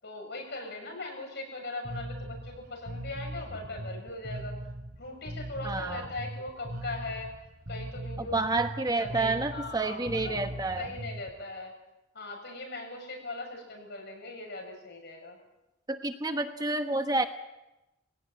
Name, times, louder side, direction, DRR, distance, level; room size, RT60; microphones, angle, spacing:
voice 1, 0.0-4.6 5.0-7.3 7.7-8.4 9.0-10.5 10.8-11.7 12.1-15.4, left 2 dB, 60° left, 2 dB, 7.0 m, -40 dB
Bass guitar, 1.8-11.3, right 1 dB, 50° right, 3.0 m, -40 dB
voice 2, 5.6-6.1 8.2-10.9 15.9-17.2, right 2 dB, 20° right, 7 dB, 1.2 m, -29 dB
21.5 x 17.5 x 9.1 m, 0.97 s
head